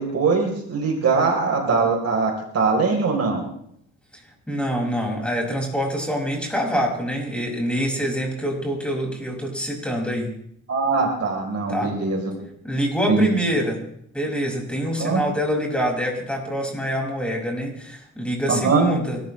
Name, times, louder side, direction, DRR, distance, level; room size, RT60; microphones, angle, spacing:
voice 1, 0.0-3.4 10.7-12.4 13.1-13.3 15.0-15.2 18.5-18.8, right 4 dB, 55° right, 1 dB, 4.1 m, -21 dB
voice 2, 4.1-10.3 11.7-12.0 12.6-13.8 14.1-19.2, equal, 5° left, 0 dB, 6.2 m, -25 dB
29.0 x 13.5 x 3.3 m, 0.71 s
cardioid pair, 90°, 30 cm